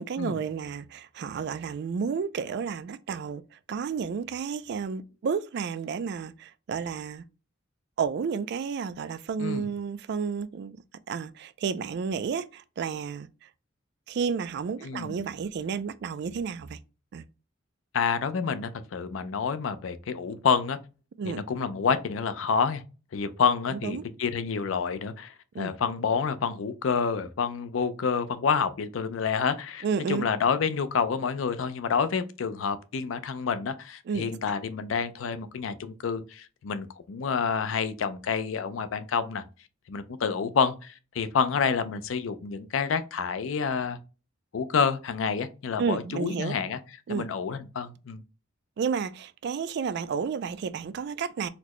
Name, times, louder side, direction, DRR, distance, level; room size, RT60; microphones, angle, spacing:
voice 1, 0.0-3.4 3.7-7.3 8.0-10.8 11.1-13.3 14.1-16.8 17.1-17.2 21.2-21.4 23.7-24.0 25.5-25.8 29.8-30.3 34.1-34.3 45.8-46.5 47.1-47.3 48.8-51.5, right 6 dB, 55° right, 0.3 m, -31 dB
voice 2, 14.8-15.2 17.9-20.8 21.2-22.8 23.1-39.4 39.9-44.0 44.5-46.8 47.1-48.2, left 6 dB, 85° left, 0.4 m, -28 dB
4.1 x 2.1 x 2.9 m
head